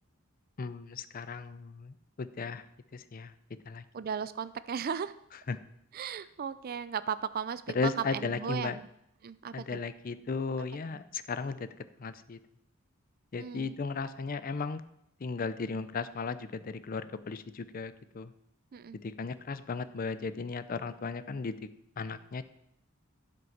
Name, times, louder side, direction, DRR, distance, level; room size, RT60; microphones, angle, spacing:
voice 1, 0.6-2.6 2.9-3.3 3.7-3.8 5.5-5.6 7.7-8.8 9.5-11.7 12.0-12.4 13.3-14.8 15.2-18.3 19.0-21.6 22.0-22.4, left 4 dB, 45° left, 14 dB, 0.5 m, -35 dB
voice 2, 3.9-5.1 5.9-8.9 9.2-9.8 10.9-11.0 13.4-13.8 18.7-19.0, right 7 dB, 45° right, 15 dB, 0.4 m, -36 dB
11.0 x 5.3 x 5.8 m, 0.79 s
head